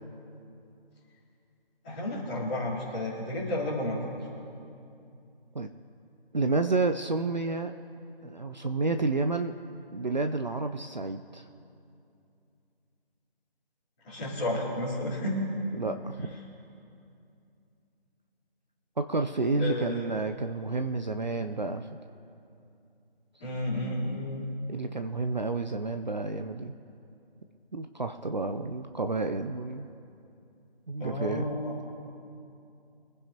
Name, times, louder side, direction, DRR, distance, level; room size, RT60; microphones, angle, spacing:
voice 1, 1.8-4.0 14.0-15.4 19.6-20.1 23.4-24.5 31.0-31.7, left 1 dB, 10° left, -11 dB, 3.0 m, -32 dB
voice 2, 6.3-7.7 8.2-9.6 9.9-11.5 15.7-16.3 19.0-21.9 24.7-26.7 27.7-29.9 30.9-31.5, right 3 dB, 50° right, 7 dB, 0.7 m, -30 dB
25.0 x 10.5 x 2.9 m, 2.6 s
figure-of-eight pair, 170°, 30 cm